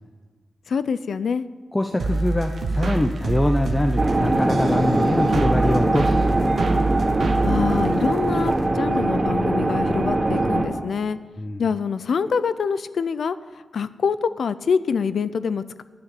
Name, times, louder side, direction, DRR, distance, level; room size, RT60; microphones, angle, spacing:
voice 1, 0.7-1.4 7.4-11.2 11.6-13.4 13.7-15.8, left 6 dB, 75° left, 15 dB, 0.4 m, -25 dB
voice 2, 1.7-6.5 11.4-11.6, left 1 dB, 20° left, 4 dB, 0.7 m, -24 dB
sound 1, 2.0-8.6, right 3 dB, 70° right, 1.1 m, -26 dB
sound 2, 4.0-10.7, right 2 dB, 35° right, 2.2 m, -21 dB
Dog, 5.0-5.9 7.0-9.1 9.8-9.9 10.1-10.9, right 1 dB, 10° right, 2.4 m, -38 dB
10.0 x 6.6 x 9.0 m, 1.4 s
cardioid pair, 80°, 0 cm